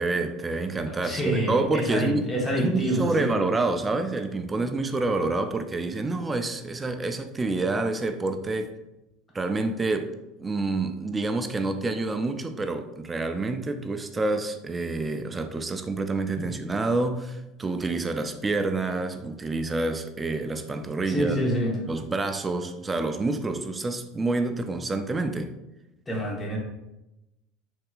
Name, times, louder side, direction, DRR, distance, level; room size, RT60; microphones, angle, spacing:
voice 1, 0.0-8.7 9.3-21.4 21.9-25.5, right 3 dB, 20° right, 0.3 m, -28 dB
voice 2, 1.0-3.3 16.4-16.5 21.0-21.8 26.1-26.6, equal, 20° left, 0.9 m, -27 dB
3.3 x 2.7 x 2.3 m
hypercardioid pair, 95°, 0 cm